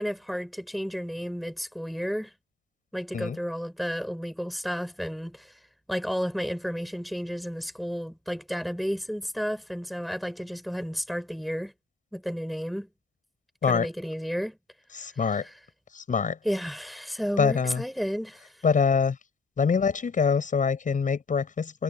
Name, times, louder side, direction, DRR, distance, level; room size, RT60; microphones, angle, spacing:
voice 1, 0.0-2.3 2.9-5.6 5.9-11.7 12.1-12.9 13.6-14.6 15.1-15.6 16.4-18.6, equal, ahead, 3.9 m, -32 dB
voice 2, 15.0-15.4 16.0-16.4 17.4-17.8 18.6-19.2 19.6-21.8, left 6 dB, 40° left, 7.1 m, -24 dB
cardioid pair, 90°, 20 cm